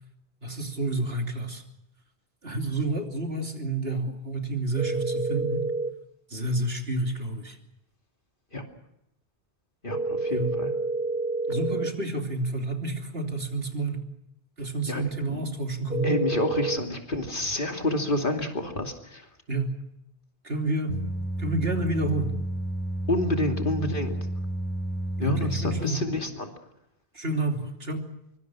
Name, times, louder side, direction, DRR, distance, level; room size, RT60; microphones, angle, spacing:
voice 1, 0.4-1.6 2.4-5.7 6.3-7.6 10.3-10.5 11.5-14.1 14.6-16.2 19.5-19.8 20.4-21.0 21.4-22.4 25.2-26.0 27.1-28.0, right 2 dB, 70° right, 3 dB, 3.4 m, -29 dB
sound 1, 4.8-5.9 9.9-11.9 15.9-16.8, right 3 dB, 10° right, 1.1 m, -28 dB
voice 2, 9.8-10.7 14.9-15.4 16.0-19.3 23.1-24.2 25.2-26.5, left 1 dB, 55° left, 3 dB, 2.9 m, -28 dB
sound 2, 20.9-25.8, right 1 dB, 10° left, 1.4 m, -31 dB
24.0 x 24.0 x 6.2 m, 0.82 s
omnidirectional pair, 1.1 m